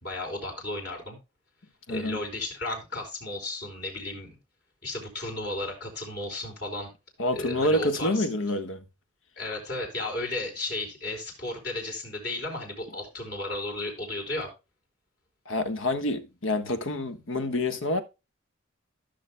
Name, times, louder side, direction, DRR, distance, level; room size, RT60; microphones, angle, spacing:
voice 1, 0.0-1.2 1.9-4.3 4.8-6.9 7.3-8.3 9.4-14.5, left 2 dB, 50° left, 4.7 m, -34 dB
voice 2, 7.2-8.8 15.5-18.0, left 1 dB, 65° left, 1.3 m, -27 dB
15.5 x 6.6 x 2.2 m
head